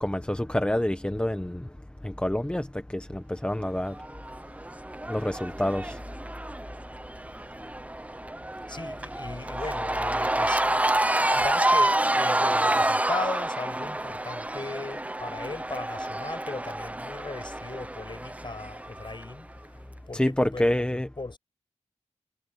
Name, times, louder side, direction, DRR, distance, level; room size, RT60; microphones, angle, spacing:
voice 1, 0.0-1.7 2.0-4.0 5.1-6.0 6.4-6.5 20.1-21.1, left 1 dB, 10° left, 1.0 m, -27 dB
Cheering / Crowd, 3.9-19.2, right 1 dB, 10° right, 0.6 m, -28 dB
voice 2, 8.7-11.0 11.3-19.5 20.1-21.4, left 3 dB, 45° left, 6.1 m, -38 dB
wide cardioid pair, 90°, 12 cm